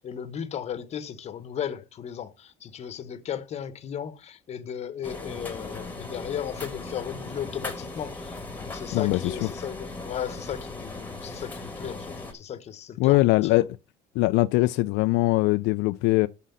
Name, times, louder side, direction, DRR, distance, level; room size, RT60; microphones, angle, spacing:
voice 1, 0.0-13.6, left 9 dB, 40° left, 1.0 m, -36 dB
sound 1, 5.0-12.3, left 2 dB, 10° left, 1.4 m, -38 dB
voice 2, 8.9-9.3 13.0-13.8 14.2-16.3, left 20 dB, 80° left, 0.4 m, -22 dB
6.3 x 5.8 x 6.8 m
cardioid pair, 140°, 18 cm